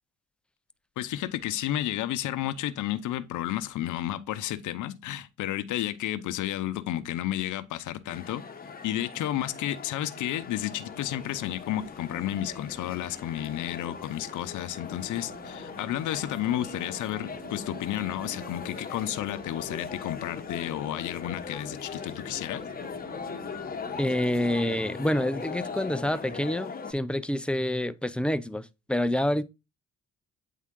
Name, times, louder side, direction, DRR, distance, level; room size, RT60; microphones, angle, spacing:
voice 1, 1.0-8.4 8.8-22.6, left 13 dB, 80° left, 0.7 m, -32 dB
sound 1, 8.1-26.9, left 5 dB, 30° left, 0.9 m, -40 dB
sound 2, 10.5-26.5, right 1 dB, 15° right, 4.0 m, -55 dB
sound 3, 14.9-24.4, right 6 dB, 60° right, 0.9 m, -50 dB
voice 2, 24.0-29.4, left 1 dB, 5° left, 0.3 m, -27 dB
8.4 x 3.6 x 3.6 m
cardioid pair, 90°, 30 cm